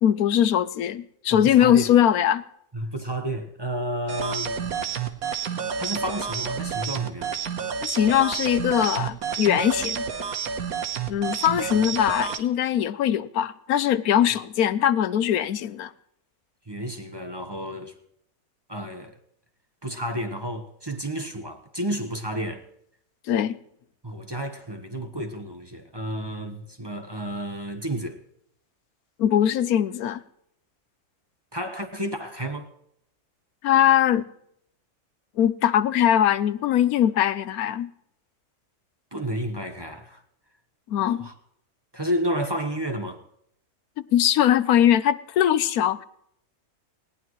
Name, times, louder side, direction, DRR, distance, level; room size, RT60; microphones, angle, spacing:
voice 1, 0.0-2.4 7.8-10.0 11.1-15.9 23.3-23.6 29.2-30.2 33.6-34.3 35.4-37.9 40.9-41.3 44.0-46.0, left 10 dB, 80° left, 1.2 m, -21 dB
voice 2, 1.3-1.9 2.7-4.7 5.8-7.3 11.6-11.7 16.7-17.9 18.7-19.2 19.8-22.7 24.0-28.2 31.5-32.7 39.1-40.2 41.0-41.3 41.9-43.2, right 1 dB, 20° right, 1.2 m, -31 dB
sound 1, 4.1-12.4, right 6 dB, 80° right, 1.6 m, -30 dB
19.5 x 18.0 x 3.2 m
omnidirectional pair, 1.5 m